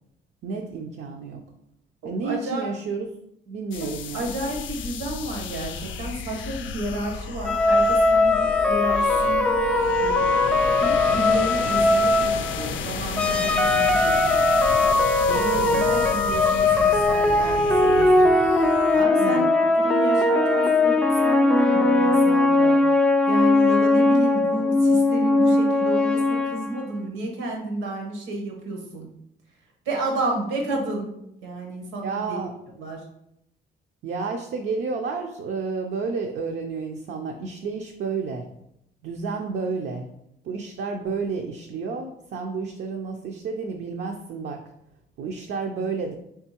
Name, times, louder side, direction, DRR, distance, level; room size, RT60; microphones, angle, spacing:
voice 1, 0.4-1.4 2.0-3.1 3.5-4.3 15.6-15.9 19.2-19.5 32.0-32.5 34.0-38.5 39.0-40.1 40.4-44.6 45.2-46.1, right 4 dB, 65° right, 2 dB, 0.5 m, -31 dB
voice 2, 2.2-2.7 3.7-9.6 10.0-10.2 10.8-14.8 15.3-18.4 18.9-23.0 23.3-29.1 29.8-31.1 31.4-32.4 32.8-33.0, right 2 dB, 90° right, 0 dB, 1.1 m, -31 dB
sound 1, 3.7-19.0, left 6 dB, 75° left, 0.4 m, -33 dB
sound 2, 7.4-12.7 13.2-26.8, left 2 dB, 5° left, 0.4 m, -20 dB
3.7 x 3.5 x 2.9 m, 0.78 s
cardioid pair, 90°, 20 cm